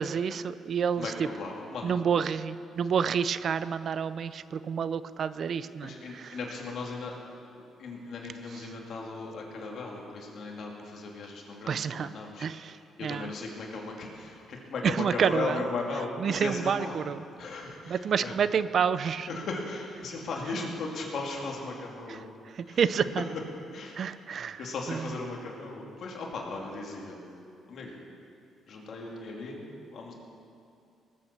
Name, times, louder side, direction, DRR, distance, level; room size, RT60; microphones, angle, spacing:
voice 1, 0.0-1.1 1.8-6.4 11.7-12.1 12.4-13.3 14.8-15.7 16.2-17.2 17.9-19.3 22.1-22.2 22.5-23.2 23.9-24.6 24.9-25.1, right 7 dB, 55° right, 15 dB, 0.5 m, -29 dB
voice 2, 1.0-1.9 5.8-7.1 7.5-12.5 13.0-17.0 17.4-18.4 19.3-22.3 22.7-22.8 23.7-24.0 24.6-27.2 27.7-28.0 28.7-30.1, left 3 dB, 65° left, -1 dB, 2.8 m, -37 dB
18.5 x 8.7 x 7.0 m, 2.5 s
cardioid pair, 90°, 0 cm